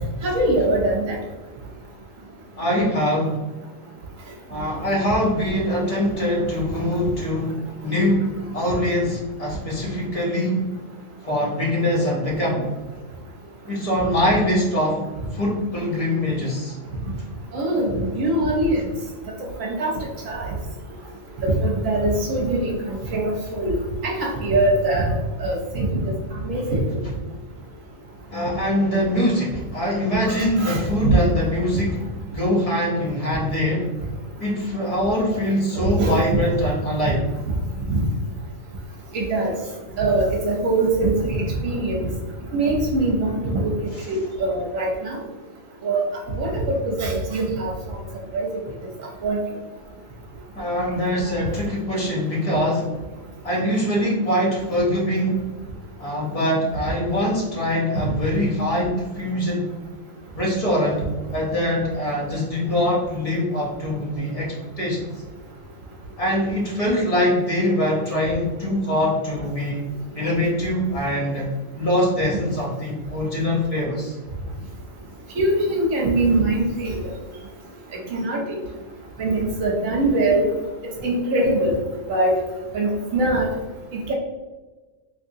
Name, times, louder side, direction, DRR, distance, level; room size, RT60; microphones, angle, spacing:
voice 1, 0.2-1.2 17.5-18.9 19.6-20.5 21.4-23.7 24.0-26.0 26.4-26.8 30.3-31.2 35.7-36.2 39.1-39.5 40.0-42.1 42.5-43.7 44.1-45.2 45.8-46.0 46.4-47.7 48.3-48.5 49.2-49.4 75.3-77.0 78.1-78.6 79.2-80.4 81.0-81.8 82.1-82.3 82.7-83.5 84.1-84.2, right 2 dB, 70° right, -1 dB, 1.0 m, -22 dB
voice 2, 2.6-3.4 4.5-10.6 11.2-12.7 13.7-16.8 28.3-32.0 32.3-33.9 34.4-37.2 50.5-53.0 53.4-55.5 56.0-59.7 60.3-65.2 66.2-69.8 70.1-71.5 71.7-74.2, left 1 dB, 35° left, -4 dB, 0.7 m, -23 dB
3.5 x 2.9 x 2.6 m, 1.2 s
omnidirectional pair, 1.5 m